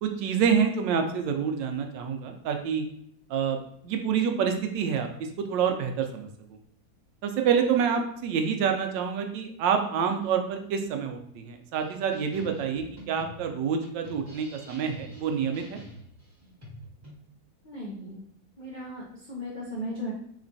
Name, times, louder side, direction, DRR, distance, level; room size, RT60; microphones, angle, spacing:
voice 1, 0.0-2.9 3.3-5.1 5.4-6.3 7.2-15.8, right 7 dB, 85° right, 5 dB, 1.3 m, -27 dB
sound 1, 11.7-17.1, equal, 25° right, 1.5 m, -47 dB
voice 2, 17.6-18.2 18.6-20.1, equal, 65° left, -5 dB, 0.4 m, -36 dB
4.1 x 3.0 x 2.6 m, 0.67 s
omnidirectional pair, 2.0 m